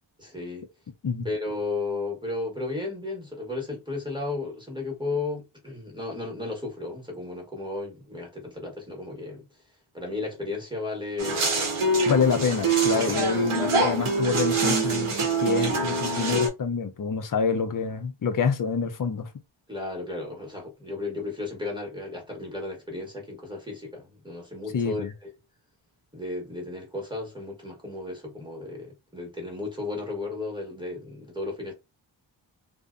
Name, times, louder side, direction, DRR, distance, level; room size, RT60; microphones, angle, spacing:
voice 1, 0.2-0.7 1.2-9.5 9.9-11.5 13.1-13.4 14.0-14.2 19.7-25.3 26.1-31.7, left 3 dB, 10° right, 1.0 m, -34 dB
sound 1, 11.2-16.5, right 3 dB, 85° right, 0.9 m, -24 dB
voice 2, 12.1-15.1 15.4-19.3 24.7-25.1, left 6 dB, 45° left, 0.5 m, -27 dB
2.7 x 2.1 x 2.3 m
wide cardioid pair, 75°, 50 cm